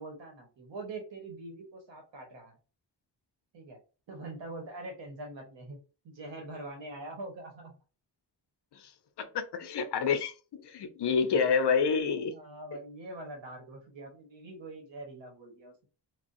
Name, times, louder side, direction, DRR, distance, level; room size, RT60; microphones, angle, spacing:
voice 1, 0.0-2.6 3.5-3.8 4.1-5.8 6.0-7.8 12.1-15.9, right 2 dB, 85° right, 1.1 m, -44 dB
voice 2, 9.2-12.3, left 6 dB, 65° left, 0.6 m, -28 dB
3.4 x 2.2 x 2.5 m
wide cardioid pair, 120°, 44 cm